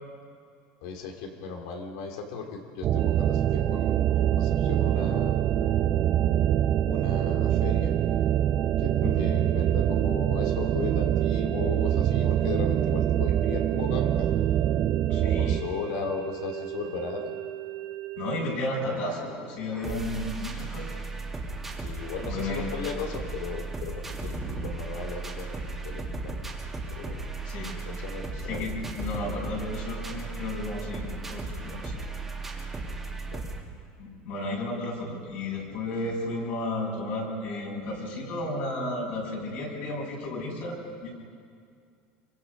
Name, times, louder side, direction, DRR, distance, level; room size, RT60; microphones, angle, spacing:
voice 1, 0.8-5.4 6.8-7.9 8.8-14.3 15.2-17.3 21.8-26.3 26.9-27.2 27.8-28.7 33.3-33.4, left 5 dB, 70° left, 3 dB, 3.0 m, -36 dB
sound 1, 2.8-15.6, right 11 dB, 30° right, 0.5 m, -24 dB
sound 2, 3.0-18.4, right 16 dB, 55° right, 0.9 m, -39 dB
voice 2, 15.1-15.7 18.2-20.9 22.3-22.7 27.4-27.8 28.4-31.9 34.0-41.1, left 2 dB, 50° left, -1 dB, 6.9 m, -33 dB
sound 3, 18.7-33.6, right 3 dB, 5° right, 2.1 m, -36 dB
27.5 x 24.5 x 5.5 m, 2.2 s
cardioid pair, 180°, 3 cm